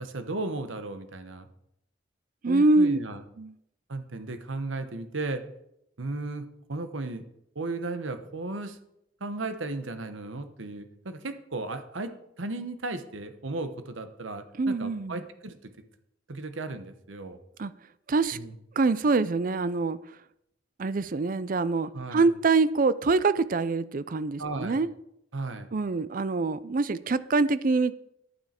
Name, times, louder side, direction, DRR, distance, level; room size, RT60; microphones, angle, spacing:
voice 1, 0.0-1.5 2.5-3.2 3.9-5.4 6.0-7.2 7.5-8.8 9.2-12.1 12.4-15.6 16.3-17.4 18.3-18.5 21.9-22.3 24.4-24.8 25.3-25.7, right 2 dB, 90° right, 1.1 m, -35 dB
voice 2, 2.4-3.0 3.4-3.5 14.6-15.2 17.6-17.7 18.1-18.4 18.8-20.0 20.8-24.9 25.7-27.9, right 3 dB, 45° right, 0.5 m, -25 dB
11.0 x 9.1 x 4.4 m
head